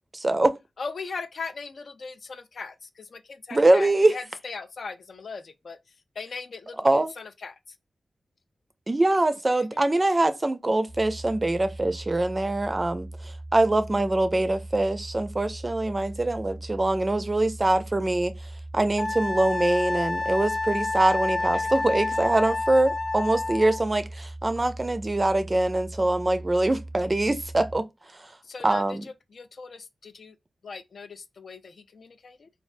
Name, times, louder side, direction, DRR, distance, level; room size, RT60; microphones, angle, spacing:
voice 1, 0.1-0.6 3.5-4.1 6.8-7.1 8.9-18.3 18.7-27.8 28.1-28.3 28.6-29.0, right 2 dB, 25° right, 0.4 m, -23 dB
voice 2, 0.8-7.8 9.6-9.8 21.4-21.7 22.1-22.6 28.4-30.4 30.6-32.5, left 4 dB, 65° left, 0.3 m, -39 dB
sound 1, 10.9-27.8, right 2 dB, 85° left, 1.0 m, -40 dB
Wind instrument woodwind instrument, 19.0-23.8, left 3 dB, 35° left, 0.6 m, -29 dB
3.2 x 2.3 x 2.5 m
wide cardioid pair, 85°, 0 cm